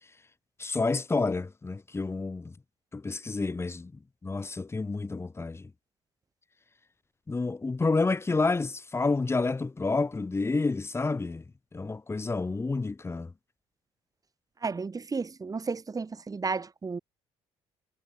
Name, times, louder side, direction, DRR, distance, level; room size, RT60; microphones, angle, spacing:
voice 1, 0.6-2.5 2.9-3.9 4.2-5.7 7.3-11.4 11.7-13.3, left 3 dB, 20° left, 1.3 m, -29 dB
voice 2, 14.6-17.0, right 4 dB, 30° right, 3.7 m, -33 dB
supercardioid pair, 70°, 12 cm